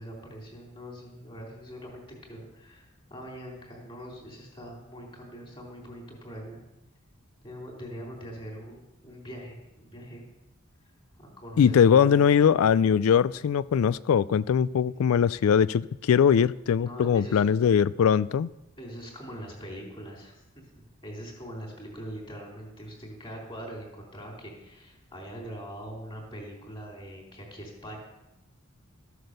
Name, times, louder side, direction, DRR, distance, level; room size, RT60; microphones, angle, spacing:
voice 1, 0.0-6.6 7.4-10.2 11.2-12.2 16.8-17.6 18.8-20.3 21.0-28.0, equal, 25° left, 3.8 m, -42 dB
voice 2, 11.6-18.5, left 7 dB, 80° left, 0.3 m, -21 dB
14.0 x 8.0 x 6.6 m
head